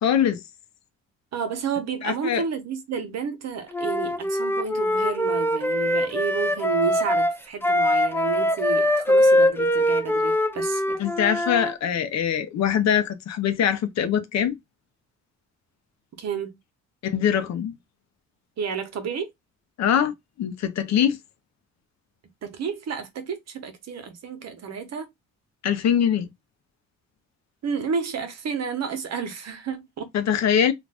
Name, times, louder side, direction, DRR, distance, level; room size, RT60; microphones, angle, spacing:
voice 1, 0.0-0.4 2.0-2.4 11.0-14.5 17.0-17.7 19.8-21.2 25.6-26.3 30.1-30.7, left 9 dB, 60° left, 0.7 m, -23 dB
voice 2, 1.3-11.0 16.2-16.6 18.6-19.3 22.4-25.1 27.6-30.1, right 6 dB, 60° right, 0.9 m, -31 dB
Wind instrument woodwind instrument, 3.7-11.7, left 1 dB, 10° left, 0.5 m, -22 dB
2.5 x 2.4 x 3.3 m
cardioid pair, 90°, 30 cm